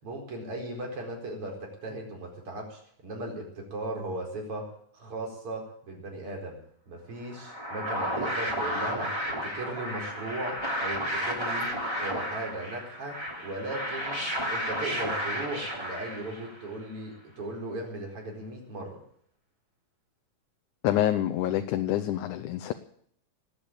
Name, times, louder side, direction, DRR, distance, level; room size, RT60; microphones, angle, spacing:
voice 1, 0.0-6.6 6.9-13.2 13.4-14.2 14.5-19.0, right 1 dB, 45° right, 0 dB, 5.3 m, -37 dB
sound 1, 7.3-16.7, equal, 10° right, 3.0 m, -32 dB
voice 2, 20.8-22.7, left 12 dB, 80° left, 8 dB, 2.3 m, -27 dB
19.5 x 8.4 x 8.8 m, 0.65 s
omnidirectional pair, 3.6 m